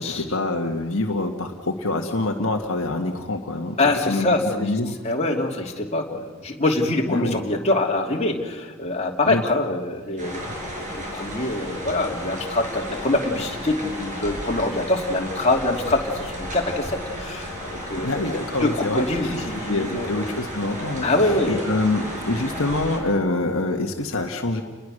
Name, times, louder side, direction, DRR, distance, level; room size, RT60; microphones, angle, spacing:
voice 1, 0.0-3.8 4.0-4.3 4.6-5.0 7.1-7.4 9.3-9.4 17.8-19.4 19.7-24.6, left 2 dB, 65° left, 2 dB, 1.7 m, -26 dB
voice 2, 3.8-4.7 5.0-10.4 10.8-20.1 21.0-21.5, left 2 dB, 30° left, 0 dB, 2.9 m, -24 dB
sound 1, 10.2-23.0, equal, 35° right, 6.5 m, -33 dB
29.5 x 21.0 x 6.6 m, 1.3 s
head